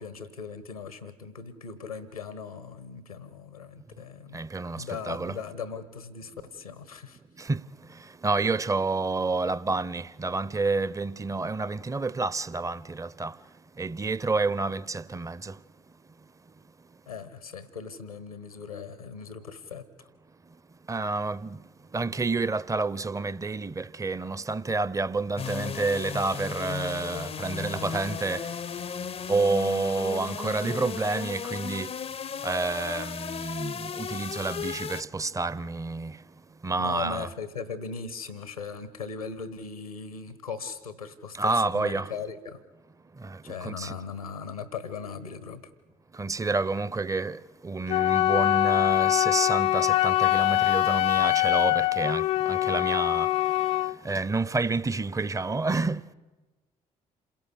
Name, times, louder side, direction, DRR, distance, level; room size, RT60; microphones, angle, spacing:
voice 1, 0.0-4.4 4.7-7.2 17.1-19.8 36.8-42.6 43.4-45.6, left 5 dB, 85° left, 1.2 m, -39 dB
voice 2, 4.3-5.4 7.4-13.4 13.8-15.6 20.9-21.6 21.9-29.0 29.3-32.0 32.4-36.2 36.6-37.3 41.3-42.1 43.1-44.0 46.1-56.1, right 3 dB, 20° right, 0.7 m, -29 dB
sound 1, 25.4-35.0, left 7 dB, 35° left, 0.6 m, -35 dB
Wind instrument woodwind instrument, 47.9-53.9, left 16 dB, 70° left, 0.6 m, -23 dB
27.5 x 16.5 x 8.4 m
figure-of-eight pair, 45°, 18 cm